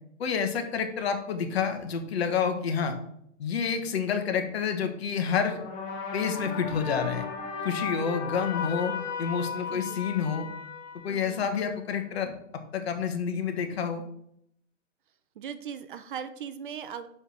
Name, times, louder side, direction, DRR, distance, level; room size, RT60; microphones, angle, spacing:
voice 1, 0.2-3.0 3.4-5.6 6.1-7.3 7.6-8.9 9.2-10.5 11.0-12.4 12.7-14.0, left 6 dB, 55° left, 6 dB, 1.6 m, -28 dB
sound 1, 5.4-11.8, left 6 dB, 35° left, 1.5 m, -36 dB
voice 2, 11.1-11.4 15.4-17.1, right 8 dB, 45° right, 11 dB, 0.7 m, -39 dB
5.7 x 5.4 x 6.4 m, 0.71 s
hypercardioid pair, 155°, 37 cm